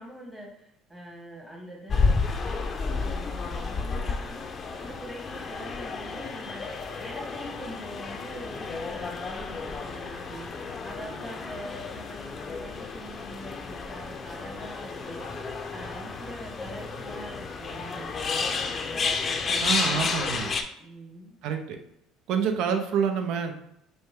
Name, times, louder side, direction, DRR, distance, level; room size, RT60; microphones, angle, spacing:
voice 1, 0.0-2.2 2.4-20.3 20.7-21.4, equal, 15° right, -2 dB, 1.2 m, -43 dB
sound 1, 1.9-20.6, left 4 dB, 40° left, 0.5 m, -31 dB
voice 2, 19.6-20.5 21.4-21.8 22.3-23.5, right 7 dB, 70° right, 5 dB, 0.6 m, -27 dB
5.2 x 2.2 x 3.6 m, 0.78 s
supercardioid pair, 75°, 0 cm